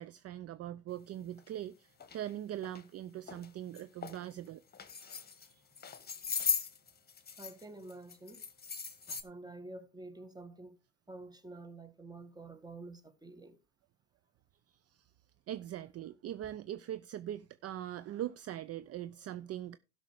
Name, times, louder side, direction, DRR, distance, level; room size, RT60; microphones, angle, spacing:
voice 1, 0.0-4.6 5.5-5.6 14.7-15.1 15.5-19.8, right 12 dB, 40° right, 0.6 m, -41 dB
sound 1, 1.4-1.5 2.0-2.2 2.6-2.8 3.3-3.5 3.8-4.2 4.7-5.5 5.8-7.6 7.9-9.2, left 6 dB, 25° left, 1.6 m, -38 dB
voice 2, 6.0-6.4 7.4-8.5 9.1-10.8 11.1-13.6, right 2 dB, 10° right, 1.8 m, -49 dB
12.0 x 6.1 x 4.9 m
hypercardioid pair, 70°, 36 cm